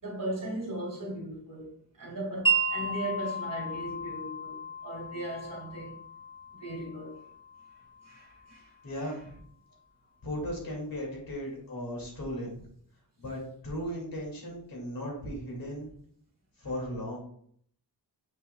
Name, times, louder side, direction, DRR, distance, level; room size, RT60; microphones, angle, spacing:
voice 1, 0.0-1.7 2.0-6.0 6.5-7.2 8.0-8.7, right 1 dB, 50° right, 2.4 m, -37 dB
Wind chime, 2.5-8.5, right 4 dB, 10° left, 1.0 m, -34 dB
voice 2, 8.8-9.4 10.2-12.7 13.2-15.9 16.6-17.2, equal, 55° left, 2.5 m, -36 dB
7.2 x 6.5 x 2.3 m
wide cardioid pair, 165°, 42 cm